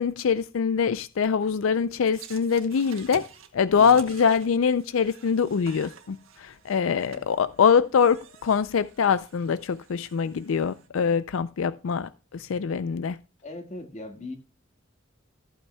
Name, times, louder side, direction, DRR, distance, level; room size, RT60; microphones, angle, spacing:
voice 1, 0.0-3.2 3.5-13.2, left 6 dB, 80° left, 0.4 m, -24 dB
sound 1, 2.0-10.9, right 7 dB, 80° right, 1.8 m, -49 dB
voice 2, 13.4-14.4, left 2 dB, 35° left, 1.8 m, -39 dB
14.0 x 8.7 x 2.2 m
head